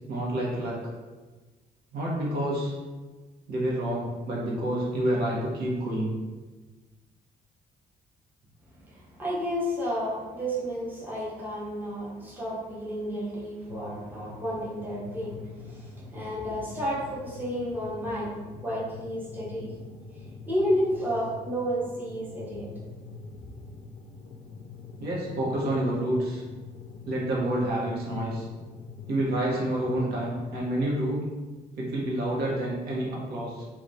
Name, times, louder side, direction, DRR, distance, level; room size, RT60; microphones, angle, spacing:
voice 1, 0.1-0.9 1.9-2.7 3.5-6.1 25.0-26.4 27.1-28.5 29.1-31.3 31.8-33.6, right 1 dB, 85° right, -4 dB, 0.9 m, -28 dB
voice 2, 8.8-19.8 20.5-22.7, equal, 10° right, -7 dB, 0.7 m, -31 dB
sound 1, 13.7-30.6, left 4 dB, 80° left, 0.4 m, -45 dB
3.3 x 2.3 x 2.6 m, 1.3 s
cardioid pair, 165°, 16 cm